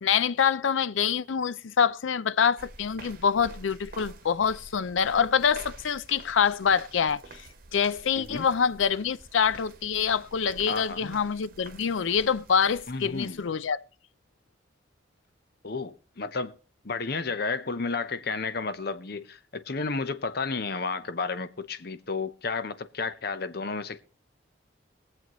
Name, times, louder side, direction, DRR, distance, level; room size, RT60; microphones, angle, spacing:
voice 1, 0.0-7.2 7.7-13.8, left 7 dB, 85° left, 0.5 m, -25 dB
sound 1, 2.6-13.7, right 3 dB, 50° right, 1.1 m, -48 dB
voice 2, 8.2-8.5 10.7-11.2 12.9-13.4 15.6-16.6 16.8-24.0, left 4 dB, 55° left, 0.8 m, -32 dB
22.0 x 7.7 x 3.0 m
head